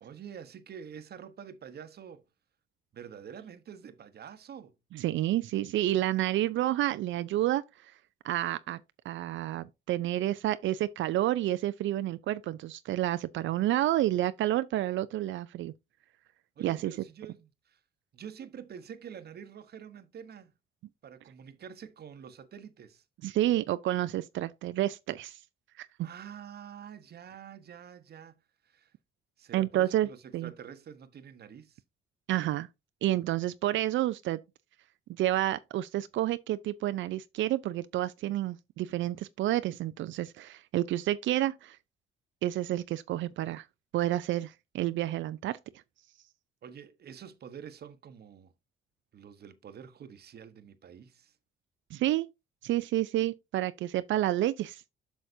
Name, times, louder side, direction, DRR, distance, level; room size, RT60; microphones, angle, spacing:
voice 1, 0.0-2.2 2.9-4.7 16.6-17.8 18.1-20.5 21.0-23.0 26.0-28.4 28.6-28.9 29.4-31.8 46.6-48.5 49.1-51.4, right 8 dB, 55° right, 1.0 m, -47 dB
voice 2, 4.9-7.6 8.2-8.8 9.1-15.7 16.6-16.9 23.2-25.4 25.8-26.1 29.5-30.1 30.3-30.5 32.3-32.7 33.0-34.4 35.2-41.8 42.4-43.6 43.9-45.6 51.9-52.3 52.6-54.8, right 14 dB, 75° right, 0.4 m, -29 dB
7.9 x 6.3 x 2.6 m
cardioid pair, 90°, 20 cm